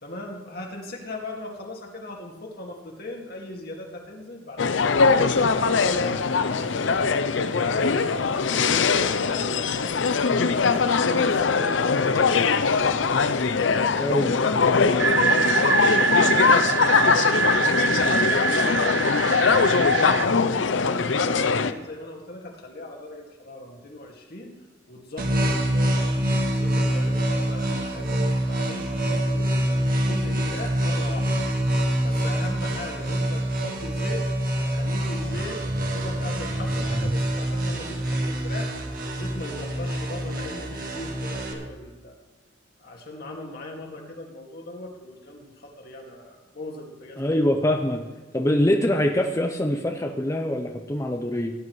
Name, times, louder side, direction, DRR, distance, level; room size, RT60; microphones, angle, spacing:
voice 1, 0.0-9.9 10.5-12.5 13.5-13.9 14.3-17.3 17.7-19.0 19.4-24.5 24.9-31.3 32.0-38.7 39.0-42.1 42.8-47.2, left 1 dB, 55° left, 1 dB, 2.2 m, -39 dB
sound 1, 4.6-21.7, left 5 dB, 75° left, 0.6 m, -21 dB
voice 2, 14.0-14.6 47.2-48.0 48.3-51.5, left 1 dB, 15° left, 2 dB, 0.7 m, -24 dB
sound 2, 15.0-20.3, right 6 dB, 75° right, 0.7 m, -24 dB
sound 3, 25.2-41.5, right 1 dB, 50° right, 1.7 m, -25 dB
17.0 x 10.5 x 3.2 m, 1.3 s
head